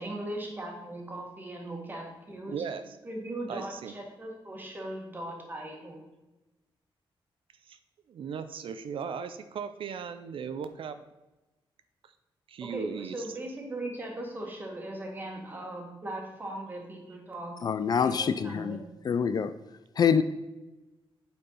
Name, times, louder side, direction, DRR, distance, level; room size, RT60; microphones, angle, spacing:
voice 1, 0.0-2.6 3.0-6.0 12.6-17.6 18.0-18.8, right 1 dB, 20° right, 1 dB, 1.6 m, -39 dB
voice 2, 2.5-3.0 3.5-3.9 7.7-7.8 8.1-11.0 12.0-12.1 12.5-13.3, right 6 dB, 70° right, 10 dB, 0.5 m, -37 dB
voice 3, 17.6-19.5 20.0-20.2, left 7 dB, 45° left, 11 dB, 0.4 m, -26 dB
8.2 x 4.5 x 5.5 m, 1.1 s
wide cardioid pair, 160°, 9 cm